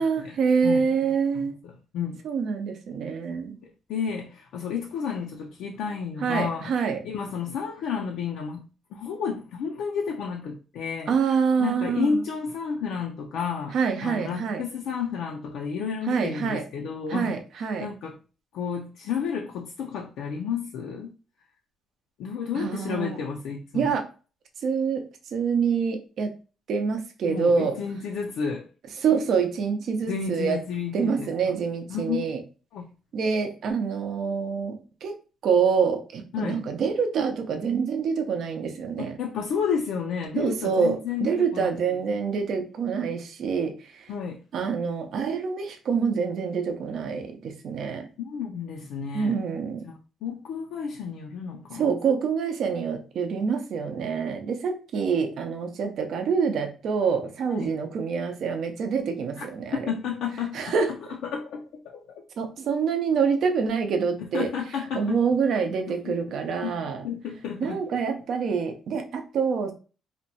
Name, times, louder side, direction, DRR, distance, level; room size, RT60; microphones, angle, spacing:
voice 1, 0.0-1.5 2.2-3.6 6.2-7.0 11.1-12.2 13.7-14.6 16.1-16.6 17.1-17.9 22.6-23.2 23.7-24.1 24.6-25.0 25.3-26.3 26.7-27.8 29.0-30.6 30.9-32.4 33.1-35.2 35.4-39.2 40.4-44.1 44.5-48.1 49.1-49.9 51.7-59.9 60.5-60.9 62.4-64.5 64.9-67.0 67.6-69.7, right 6 dB, 70° right, 0.5 m, -26 dB
voice 2, 0.6-2.2 3.9-6.7 7.0-8.6 8.9-11.1 11.6-13.8 14.0-17.3 17.8-18.1 18.5-21.1 22.2-24.0 27.3-28.7 30.1-31.6 31.9-32.3 32.7-32.9 36.3-36.6 39.0-41.7 44.1-44.4 48.2-49.3 49.8-51.9 57.5-57.7 59.4-59.5 59.9-60.7 61.1-62.2 64.2-65.2 66.0-66.2 66.6-66.7 67.0-67.8, left 6 dB, 85° left, 0.3 m, -31 dB
2.8 x 2.2 x 2.7 m
cardioid pair, 90°, 0 cm